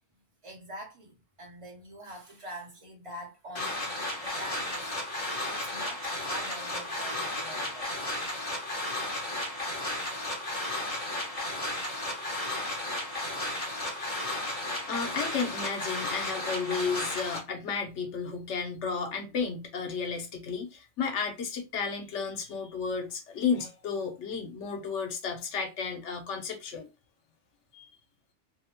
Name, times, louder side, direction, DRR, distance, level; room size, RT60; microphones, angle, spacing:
voice 1, 0.4-4.9 5.2-7.9, right 1 dB, 30° right, 0.8 m, -45 dB
sound 1, 3.5-17.4, left 1 dB, 35° left, 1.0 m, -34 dB
voice 2, 14.9-26.9 27.7-27.9, left 5 dB, 80° left, 1.0 m, -33 dB
2.7 x 2.1 x 2.9 m
omnidirectional pair, 1.2 m